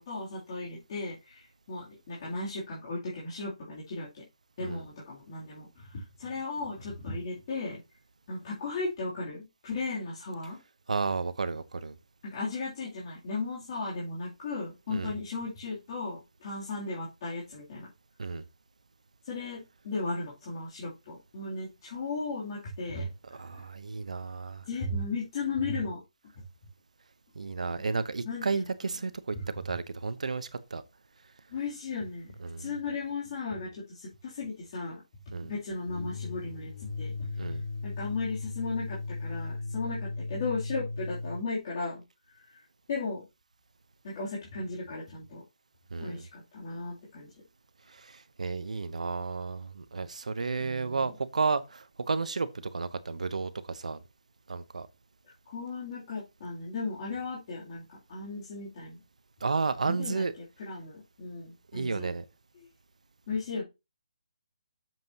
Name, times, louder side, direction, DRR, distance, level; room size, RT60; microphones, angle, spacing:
voice 1, 0.0-4.2 4.6-7.8 8.3-10.6 12.2-17.9 19.2-23.6 24.6-26.0 26.3-26.4 28.2-28.7 29.3-29.4 31.5-35.0 35.4-42.0 42.4-42.6 42.9-43.2 44.0-45.4 46.0-47.3 50.6-51.1 55.5-59.0 59.8-60.2 60.6-62.1 62.5-62.7 63.3-63.6, left 3 dB, 40° left, 3.0 m, -36 dB
voice 2, 10.9-12.0 14.9-15.1 18.2-18.4 23.3-24.6 27.3-30.8 32.4-32.7 35.3-35.5 37.4-37.6 45.9-46.3 47.9-54.0 54.5-54.9 59.4-60.3 61.7-62.2, right 4 dB, 75° right, 0.9 m, -32 dB
sound 1, 35.9-41.5, left 3 dB, 60° left, 1.2 m, -37 dB
7.9 x 7.5 x 2.9 m
hypercardioid pair, 160°, 4 cm